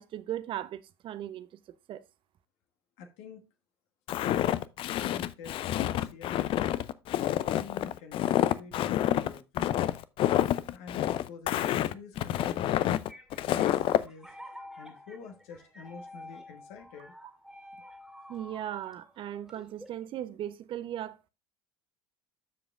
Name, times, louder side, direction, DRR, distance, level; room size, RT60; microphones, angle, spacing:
voice 1, 0.0-1.5 1.9-2.0 18.3-21.3, right 11 dB, 40° right, 0.7 m, -37 dB
voice 2, 3.0-3.4 4.9-6.7 7.5-9.7 10.7-12.9 13.4-14.3 14.8-17.1, left 5 dB, 55° left, 1.3 m, -47 dB
Walk footsteps, 4.1-14.0, left 12 dB, 40° left, 0.5 m, -28 dB
sound 1, 12.5-20.1, left 1 dB, ahead, 2.1 m, -49 dB
13.5 x 5.0 x 2.4 m
figure-of-eight pair, 70°, 13 cm